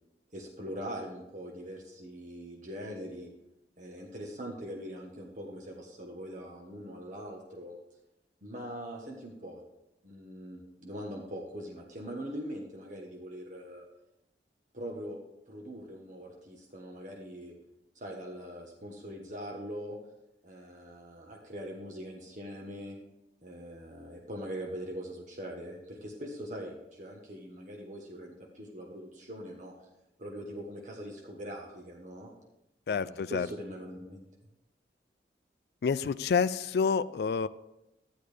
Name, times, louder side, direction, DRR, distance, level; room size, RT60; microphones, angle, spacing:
voice 1, 0.3-3.3 3.8-7.8 8.4-9.6 10.0-13.8 14.7-15.2 15.4-17.5 17.9-20.0 20.4-23.0 23.4-29.7 30.2-32.3 32.9-34.2, equal, 45° right, 0 dB, 1.2 m, -42 dB
voice 2, 32.9-33.5 35.8-37.5, left 5 dB, 60° left, 14 dB, 0.3 m, -28 dB
12.5 x 10.0 x 3.4 m, 0.91 s
head